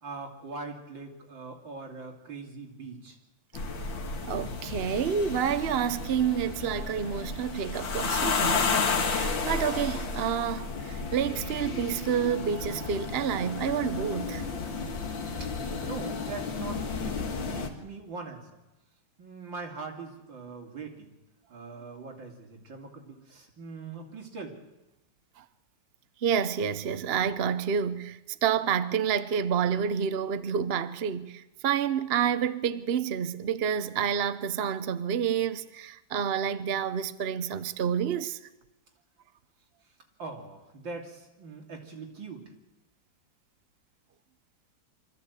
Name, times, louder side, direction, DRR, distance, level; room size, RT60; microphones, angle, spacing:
voice 1, 0.0-3.2 15.7-18.4 19.2-21.1 21.5-24.6 40.2-42.4, right 4 dB, 70° right, 3.5 m, -41 dB
sound 1, 3.5-17.7, left 4 dB, 75° left, 2.6 m, -32 dB
voice 2, 4.2-8.6 9.1-14.4 26.2-38.4, right 8 dB, 55° right, 0.7 m, -29 dB
24.0 x 14.5 x 8.2 m
omnidirectional pair, 2.1 m